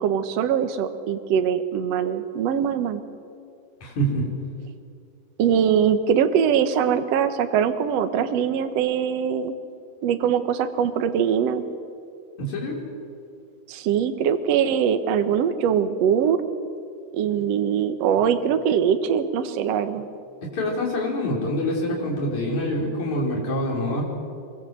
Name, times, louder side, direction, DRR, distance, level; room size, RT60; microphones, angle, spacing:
voice 1, 0.0-3.0 5.4-9.5 10.0-11.6 13.7-16.4 17.1-20.0, right 8 dB, 75° right, 9 dB, 1.5 m, -22 dB
voice 2, 3.8-4.3 12.4-12.8 20.4-24.1, equal, 45° left, -3 dB, 6.0 m, -25 dB
24.5 x 22.5 x 8.0 m, 2.4 s
omnidirectional pair, 4.7 m